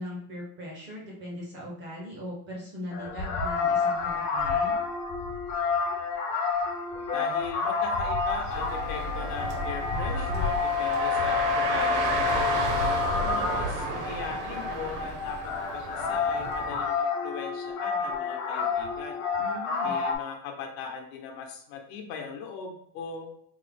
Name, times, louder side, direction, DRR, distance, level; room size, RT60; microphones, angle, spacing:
voice 1, 0.0-4.7 19.4-20.0, left 1 dB, 25° right, -2 dB, 0.4 m, -39 dB
sound 1, 2.9-20.2, left 5 dB, 40° left, 0.4 m, -29 dB
voice 2, 7.1-12.7 13.1-19.2 19.8-23.3, left 6 dB, 75° left, 3 dB, 0.9 m, -39 dB
Car, 8.2-16.8, right 4 dB, 70° right, 0.8 m, -33 dB
3.5 x 2.0 x 3.3 m, 0.69 s
cardioid pair, 170°, 48 cm